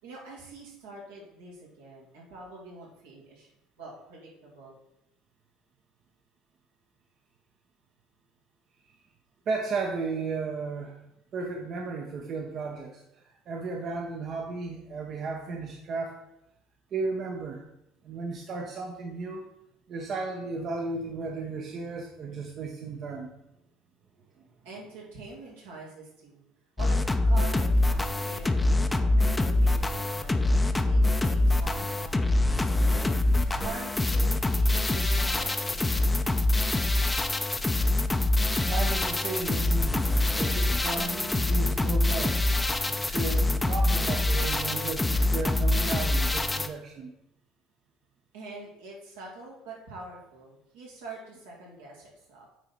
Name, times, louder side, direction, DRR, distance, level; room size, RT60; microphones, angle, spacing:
voice 1, 0.0-3.5 3.8-4.8 24.6-26.4 26.8-27.0 27.2-33.1 33.5-36.1 37.5-37.6 48.3-52.5, right 3 dB, 85° right, -4 dB, 2.8 m, -45 dB
voice 2, 9.5-11.0 11.3-13.0 13.5-16.2 16.9-17.6 18.0-19.5 19.9-23.3 38.6-42.4 42.9-47.1, right 4 dB, 50° right, 1 dB, 1.0 m, -34 dB
sound 1, 26.8-46.7, left 2 dB, 15° left, 0.7 m, -25 dB
9.0 x 4.0 x 4.6 m, 0.83 s
hypercardioid pair, 75°, 0 cm